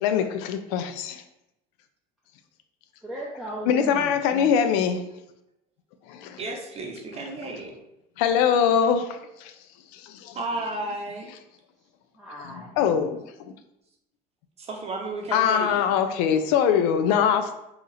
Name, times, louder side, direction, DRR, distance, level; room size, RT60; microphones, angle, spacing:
voice 1, 0.0-1.2 3.7-5.0 6.1-6.4 8.2-9.5 9.9-10.4 12.8-13.2 15.3-17.6, left 8 dB, 80° left, 8 dB, 0.4 m, -23 dB
voice 2, 3.0-4.5 11.8-12.9, right 1 dB, ahead, -6 dB, 0.6 m, -38 dB
voice 3, 6.4-7.8 10.3-11.3 14.6-15.9, right 2 dB, 35° right, 1 dB, 0.8 m, -33 dB
2.8 x 2.4 x 4.0 m, 0.85 s
supercardioid pair, 105°, 19 cm